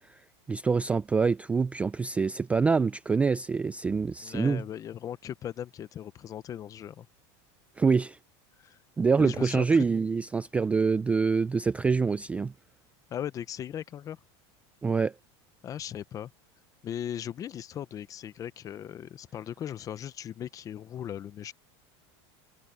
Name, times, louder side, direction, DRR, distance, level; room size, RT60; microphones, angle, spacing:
voice 1, 0.5-4.6 7.8-8.2 9.0-12.5 14.8-15.1, right 5 dB, 10° right, 0.3 m, -25 dB
voice 2, 4.2-7.1 8.6-8.8 9.2-9.8 13.1-14.2 15.6-16.3 16.8-21.5, left 10 dB, 25° left, 0.7 m, -38 dB
supercardioid pair, 155°, 14 cm